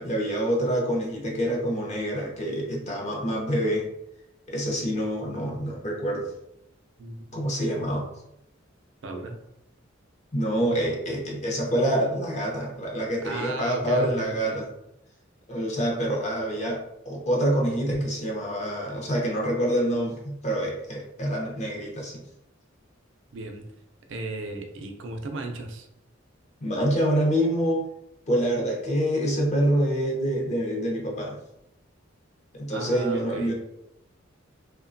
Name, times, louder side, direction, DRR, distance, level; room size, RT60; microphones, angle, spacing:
voice 1, 0.0-3.9 4.5-6.3 7.3-8.1 10.3-14.6 15.5-22.2 26.6-27.9 28.3-31.4 32.5-33.5, equal, 35° left, -2 dB, 0.6 m, -26 dB
voice 2, 7.0-7.4 9.0-9.4 13.2-14.7 23.3-23.7 24.1-25.9 32.7-33.5, right 2 dB, 65° right, 4 dB, 0.4 m, -35 dB
2.9 x 2.2 x 2.5 m, 0.84 s
head